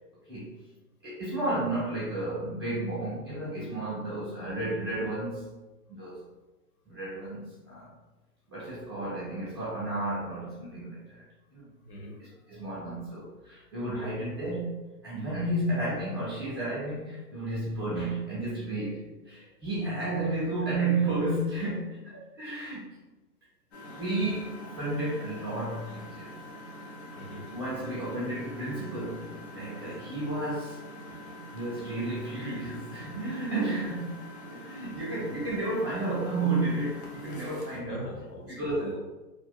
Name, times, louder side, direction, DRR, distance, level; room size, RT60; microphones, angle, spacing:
voice 1, 1.0-5.5 5.9-6.2 6.9-7.9 8.5-11.2 11.5-11.7 12.2-23.0 23.9-26.3 27.3-30.8 31.5-34.1 34.5-38.1 38.5-39.0, right 2 dB, 15° right, -11 dB, 0.4 m, -32 dB
voice 2, 11.8-12.2 12.5-12.6 27.2-27.5 34.9-35.1 37.7-39.0, left 1 dB, 65° left, -1 dB, 0.9 m, -42 dB
Engine, 23.7-37.8, equal, 45° left, 0.5 m, -45 dB
2.7 x 2.0 x 2.3 m, 1.1 s
hypercardioid pair, 150°, 49 cm